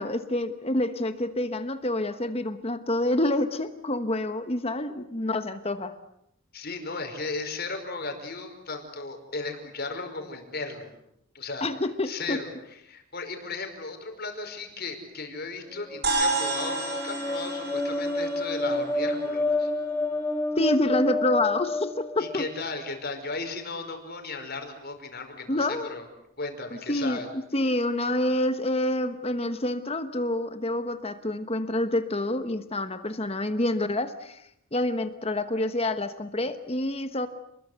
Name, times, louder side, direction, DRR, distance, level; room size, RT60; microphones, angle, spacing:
voice 1, 0.0-5.9 11.6-12.4 20.5-22.5 25.5-25.9 26.9-34.4 34.7-37.3, left 1 dB, 25° left, 10 dB, 1.2 m, -27 dB
voice 2, 6.5-10.9 11.3-11.7 12.0-12.5 12.9-19.7 22.2-26.1 26.4-27.3, left 3 dB, 45° left, 5 dB, 5.3 m, -36 dB
sound 1, 15.8-22.6, left 2 dB, 10° left, 1.8 m, -29 dB
sound 2, 16.0-20.6, right 2 dB, 50° right, 5.5 m, -32 dB
30.0 x 21.5 x 8.2 m, 0.78 s
head